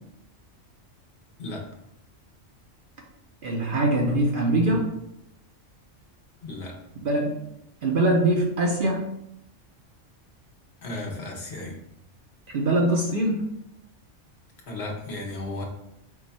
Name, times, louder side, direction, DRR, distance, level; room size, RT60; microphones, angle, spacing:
voice 1, 3.4-4.9 7.0-7.4 7.8-9.1 12.5-13.5, right 1 dB, 55° right, 0 dB, 0.7 m, -23 dB
voice 2, 6.4-6.7 10.8-11.8 14.7-15.6, left 2 dB, 60° left, 0 dB, 1.1 m, -34 dB
4.7 x 2.3 x 4.0 m, 0.81 s
omnidirectional pair, 1.3 m